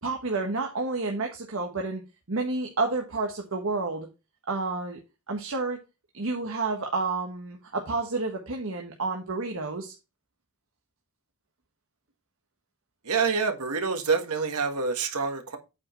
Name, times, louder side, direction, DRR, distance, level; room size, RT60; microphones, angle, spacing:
voice 1, 0.0-2.0 2.3-4.1 4.5-5.0 5.3-5.8 6.1-9.9, right 3 dB, 65° right, 1.4 m, -30 dB
voice 2, 13.0-15.6, right 5 dB, 90° right, 1.6 m, -27 dB
8.6 x 4.9 x 4.4 m
head